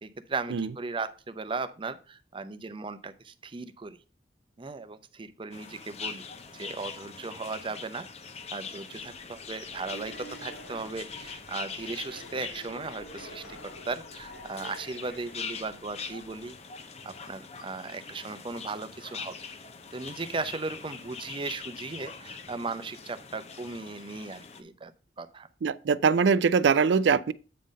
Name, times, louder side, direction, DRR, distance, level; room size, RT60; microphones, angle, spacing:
voice 1, 0.0-4.0 4.6-6.2 6.5-8.1 8.5-16.5 17.0-19.3 19.9-24.9 25.2-25.5, right 3 dB, 30° right, 0.6 m, -37 dB
sound 1, 5.5-24.6, left 5 dB, 35° left, 0.7 m, -43 dB
sound 2, 9.0-16.6, equal, 70° left, 1.8 m, -49 dB
voice 2, 25.6-27.3, right 5 dB, 75° right, 0.4 m, -22 dB
8.6 x 3.8 x 5.2 m
head